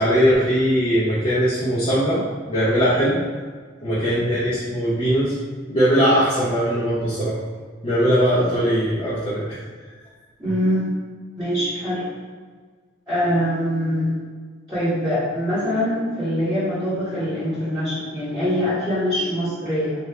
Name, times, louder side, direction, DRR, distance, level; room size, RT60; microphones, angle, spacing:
voice 1, 0.0-3.2 3.8-5.3 5.7-7.4 7.8-9.4, equal, 30° left, -11 dB, 0.8 m, -20 dB
voice 2, 10.4-10.9 11.4-12.0 13.1-14.1 14.7-19.9, equal, 20° right, -16 dB, 1.3 m, -23 dB
3.2 x 2.6 x 3.3 m, 1.5 s
head